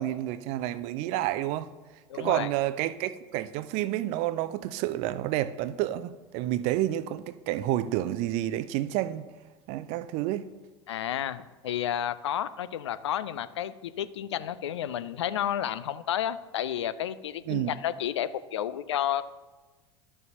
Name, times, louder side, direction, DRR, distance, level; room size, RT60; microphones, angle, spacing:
voice 1, 0.0-1.7 2.1-9.3 9.7-10.5 17.5-17.7, right 14 dB, 45° right, 0.4 m, -29 dB
voice 2, 2.1-2.5 10.9-19.3, left 10 dB, 70° left, 0.4 m, -31 dB
12.0 x 6.6 x 2.8 m
figure-of-eight pair, 80°, 15 cm